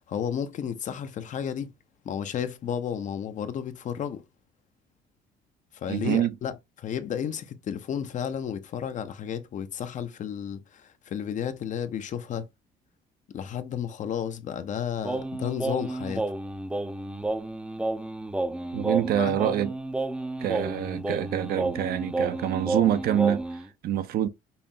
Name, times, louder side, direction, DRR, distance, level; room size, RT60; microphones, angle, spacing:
voice 1, 0.0-1.7 2.0-4.2 5.7-6.5 6.8-12.5 13.3-16.2 19.2-19.4, left 8 dB, 45° left, 0.6 m, -32 dB
voice 2, 5.9-6.4 18.7-19.7 20.4-24.3, right 11 dB, 65° right, 0.5 m, -26 dB
Singing, 15.0-23.7, right 2 dB, 5° right, 0.4 m, -31 dB
5.5 x 2.0 x 2.6 m
cardioid pair, 110°, 17 cm